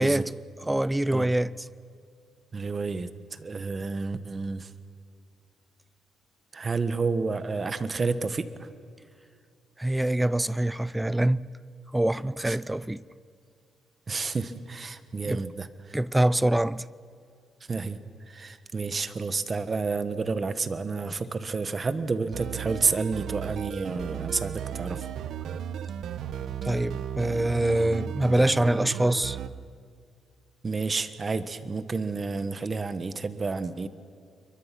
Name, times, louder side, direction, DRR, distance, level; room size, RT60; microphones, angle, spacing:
voice 1, 0.0-1.7 9.8-11.5 11.9-13.0 15.2-15.4 15.9-16.9 26.6-29.4, right 1 dB, 10° right, 0.6 m, -25 dB
voice 2, 2.5-4.7 6.5-8.7 12.4-12.6 14.1-15.7 17.7-18.0 18.3-25.1 30.6-33.9, right 4 dB, 35° right, 1.4 m, -30 dB
sound 1, 22.3-29.5, right 9 dB, 75° right, 0.9 m, -35 dB
28.5 x 23.5 x 6.0 m
cardioid pair, 90°, 0 cm